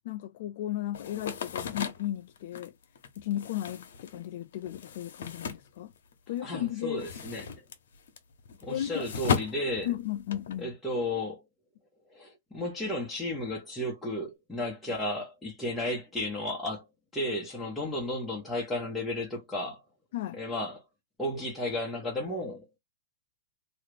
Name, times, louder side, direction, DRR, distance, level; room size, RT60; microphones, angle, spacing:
voice 1, 0.0-2.7 3.2-5.9 6.3-7.1 8.7-9.1 9.9-10.7 20.1-20.4, left 13 dB, 60° left, 0.3 m, -35 dB
sound 1, 0.9-6.4 6.7-10.6, left 7 dB, 75° left, 0.8 m, -36 dB
voice 2, 6.4-7.6 8.6-9.9 10.6-11.4 12.1-16.9 17.1-19.8 20.3-20.8 21.2-22.8, left 1 dB, 5° left, 1.0 m, -33 dB
2.9 x 2.4 x 3.3 m
hypercardioid pair, 135°, 0 cm